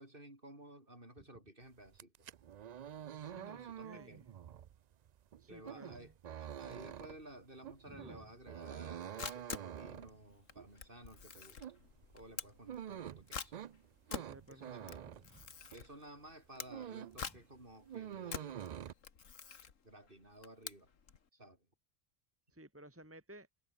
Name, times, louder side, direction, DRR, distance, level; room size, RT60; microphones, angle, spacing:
voice 1, 0.0-2.1 3.3-4.3 5.5-6.1 6.4-11.6 12.1-13.6 14.5-15.1 15.7-18.7 19.8-20.9 21.3-21.7, right 1 dB, 45° right, 6.5 m, -55 dB
sound 1, 1.9-15.9 16.3-17.3 17.5-18.9, right 9 dB, 80° right, 0.3 m, -47 dB
voice 2, 3.3-4.2 5.4-6.1 7.9-8.3 14.1-15.4 17.2-17.4 22.5-23.5, right 1 dB, 10° right, 2.4 m, -56 dB
Camera, 8.8-21.2, left 6 dB, 80° left, 2.0 m, -47 dB
omnidirectional pair, 1.3 m